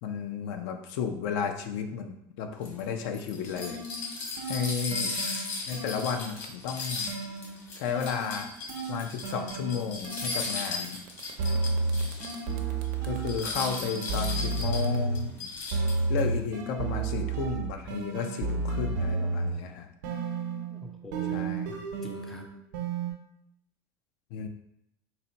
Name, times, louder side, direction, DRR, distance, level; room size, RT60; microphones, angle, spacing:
voice 1, 0.0-3.8 4.2-5.1 5.7-7.1 7.7-8.5 8.9-11.0 13.0-15.5 16.1-19.9 21.3-21.7 24.3-24.5, left 6 dB, 65° left, 6 dB, 0.5 m, -33 dB
sound 1, 2.6-12.5 12.8-12.9 13.2-16.2, left 3 dB, 45° left, 1.3 m, -36 dB
sound 2, 3.2-6.5 7.1-10.8 11.4-15.3 15.7-19.7 20.0-23.1, right 3 dB, 90° right, 0.8 m, -32 dB
sound 3, 10.0-16.1, right 8 dB, 55° right, 0.6 m, -51 dB
voice 2, 20.7-22.5, left 2 dB, 5° left, 3 dB, 0.3 m, -45 dB
4.1 x 2.2 x 4.0 m, 0.81 s
supercardioid pair, 145°, 9 cm